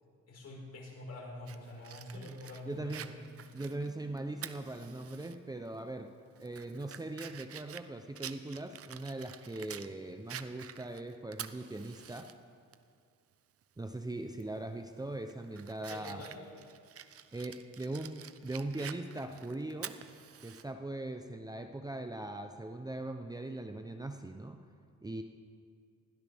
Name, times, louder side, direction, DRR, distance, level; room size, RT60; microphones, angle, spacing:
voice 1, 0.3-3.2 15.9-16.5, left 2 dB, 55° left, -2 dB, 5.1 m, -46 dB
Fire, 1.5-5.3 5.7-5.8 6.3-9.9 10.3-12.3 12.7-12.8 14.3-14.6 15.0-20.6, right 9 dB, 50° right, 0.7 m, -48 dB
voice 2, 2.6-3.2 3.5-6.1 6.4-12.3 13.8-16.3 17.3-20.0 20.4-24.6 25.0-25.2, right 2 dB, 15° right, 6 dB, 0.8 m, -40 dB
20.5 x 16.5 x 3.6 m, 2.2 s
cardioid pair, 90°, 30 cm